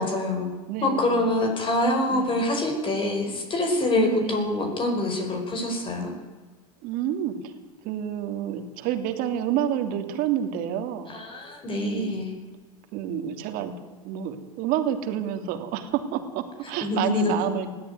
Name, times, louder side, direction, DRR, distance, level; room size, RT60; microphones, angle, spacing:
voice 1, 0.0-0.5 0.8-6.1 11.1-12.3 16.8-17.5, left 2 dB, 30° left, 4 dB, 5.0 m, -25 dB
voice 2, 0.7-1.2 2.1-2.4 3.3-3.4 4.0-4.4 6.8-7.5 7.8-11.1 11.8-12.3 12.9-13.7 14.0-17.7, right 10 dB, 55° right, 7 dB, 2.9 m, -29 dB
20.0 x 14.0 x 9.5 m, 1.4 s
hypercardioid pair, 100°, 18 cm